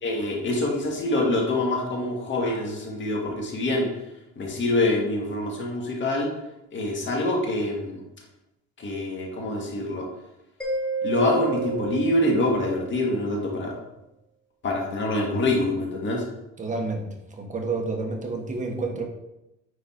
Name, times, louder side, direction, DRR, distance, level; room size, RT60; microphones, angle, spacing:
voice 1, 0.0-3.9 4.4-6.3 6.7-8.0 8.8-10.1 11.0-13.7 14.6-16.2, left 1 dB, 40° left, -1 dB, 1.8 m, -25 dB
Mallet percussion, 10.6-13.1, right 4 dB, 5° left, 1.7 m, -31 dB
voice 2, 16.6-19.0, right 3 dB, 25° right, 2 dB, 1.4 m, -30 dB
9.6 x 4.1 x 4.3 m, 0.92 s
cardioid pair, 145°, 30 cm